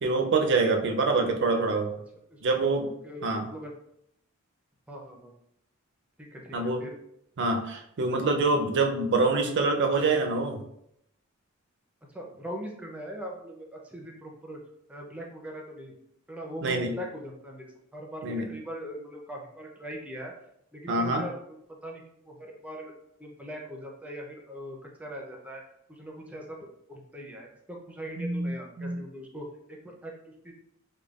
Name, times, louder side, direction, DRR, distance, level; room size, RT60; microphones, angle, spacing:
voice 1, 0.0-1.9 2.4-2.9 3.2-3.5 6.5-6.9 7.4-10.6 16.6-16.9 18.2-18.5 20.9-21.3 28.2-29.0, right 3 dB, 60° right, 4 dB, 0.5 m, -25 dB
voice 2, 3.0-3.7 4.9-5.3 6.2-7.0 12.1-14.6 14.9-15.9 16.3-20.3 20.7-21.6 21.8-22.9 23.2-25.6 25.9-26.6 26.9-29.5 29.8-30.1 30.4-30.5, equal, 5° right, 0 dB, 0.5 m, -41 dB
5.0 x 2.2 x 2.3 m, 0.76 s
head